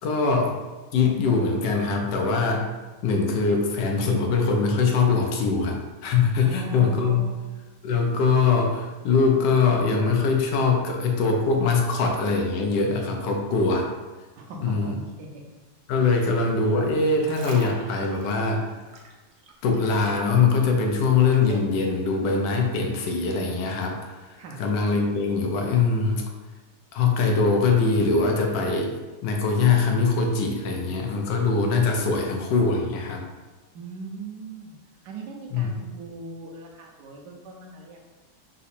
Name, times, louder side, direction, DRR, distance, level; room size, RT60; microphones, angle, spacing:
voice 1, 0.0-0.6 0.9-2.6 3.0-7.3 7.8-13.9 14.6-15.0 15.9-18.7 19.6-26.2 26.9-28.9 29.2-33.2 35.5-35.7, left 4 dB, 80° left, 2 dB, 1.3 m, -22 dB
voice 2, 6.4-7.5 14.4-15.4 16.1-16.3 24.4-24.6 33.7-34.7 35.0-38.0, right 3 dB, 75° right, 1 dB, 1.2 m, -40 dB
sound 1, 17.0-20.0 20.3-21.7 22.3-22.5, right 3 dB, 90° right, 0.5 m, -45 dB
4.0 x 2.6 x 4.2 m, 1.2 s
omnidirectional pair, 1.9 m